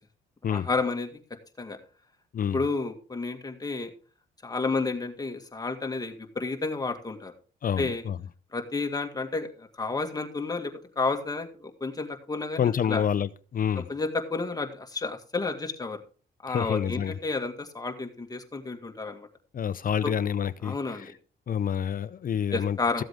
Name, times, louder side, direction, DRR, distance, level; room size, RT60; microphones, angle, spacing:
voice 1, 0.5-1.2 1.6-1.8 2.5-3.9 4.4-7.3 7.8-8.0 8.5-13.0 13.8-16.0 16.4-19.3 20.0-20.2 20.6-21.1 22.5-23.0, left 3 dB, 20° left, 2.0 m, -31 dB
voice 2, 7.6-8.2 12.6-13.8 16.5-17.1 19.5-21.1 21.5-23.0, left 8 dB, 45° left, 0.6 m, -28 dB
14.5 x 7.7 x 3.6 m
cardioid pair, 90°, 20 cm